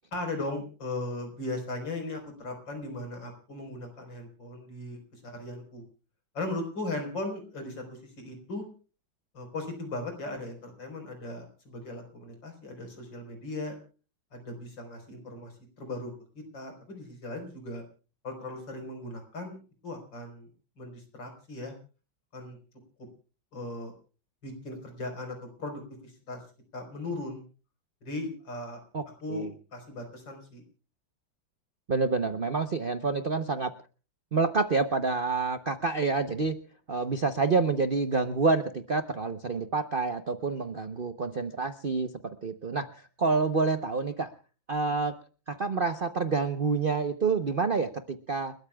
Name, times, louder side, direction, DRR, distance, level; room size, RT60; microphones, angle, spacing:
voice 1, 0.1-5.8 6.3-8.6 9.3-13.7 14.3-15.5 15.8-17.8 18.2-19.6 19.8-20.5 20.8-21.7 22.3-22.6 23.5-23.9 24.4-26.4 26.7-27.4 28.0-28.8 29.2-30.6, left 2 dB, 70° left, 5 dB, 5.0 m, -38 dB
voice 2, 28.9-29.5 31.9-33.7 34.3-36.6 36.9-42.9 43.2-44.3 44.7-45.2 45.5-48.5, right 4 dB, 45° right, 9 dB, 0.7 m, -28 dB
30.0 x 13.5 x 2.3 m, 0.36 s
omnidirectional pair, 2.1 m